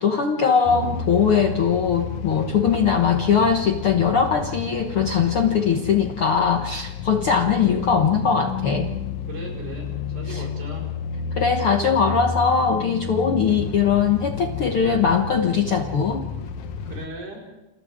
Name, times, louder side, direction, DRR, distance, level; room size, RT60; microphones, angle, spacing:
voice 1, 0.0-8.9 10.3-10.4 11.4-16.3, left 6 dB, 85° left, 3 dB, 1.2 m, -21 dB
sound 1, 0.7-17.1, left 6 dB, 65° left, 1.9 m, -31 dB
voice 2, 9.3-10.9 13.6-13.9 16.8-17.5, right 2 dB, 50° right, -2 dB, 6.6 m, -38 dB
29.0 x 28.5 x 3.7 m, 0.98 s
omnidirectional pair, 4.5 m